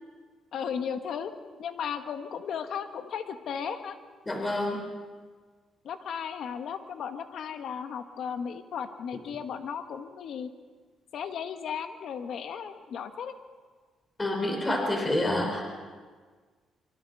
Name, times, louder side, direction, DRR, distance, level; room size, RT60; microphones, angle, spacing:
voice 1, 0.5-1.3 1.6-4.0 5.8-10.5 11.1-13.3, left 7 dB, 70° left, 7 dB, 1.6 m, -35 dB
voice 2, 4.3-4.8 14.2-15.6, left 1 dB, 20° left, 1 dB, 4.5 m, -28 dB
26.0 x 25.0 x 4.2 m, 1.5 s
cardioid pair, 90°, 0 cm